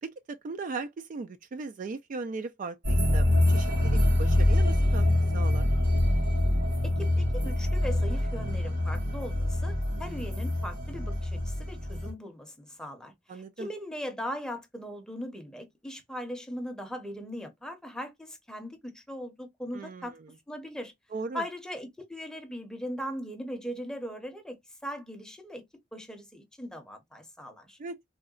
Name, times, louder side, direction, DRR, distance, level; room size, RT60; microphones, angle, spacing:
voice 1, 0.0-5.0 5.3-5.7 13.3-13.7 19.7-20.1 21.1-21.4 27.8-28.0, right 4 dB, 45° right, 0.3 m, -38 dB
sound 1, 2.8-12.1, left 1 dB, 75° right, 1.7 m, -25 dB
voice 2, 6.8-20.2 20.5-20.9 21.3-25.6 25.9-27.8, equal, 5° left, 0.7 m, -39 dB
3.7 x 2.1 x 2.3 m
head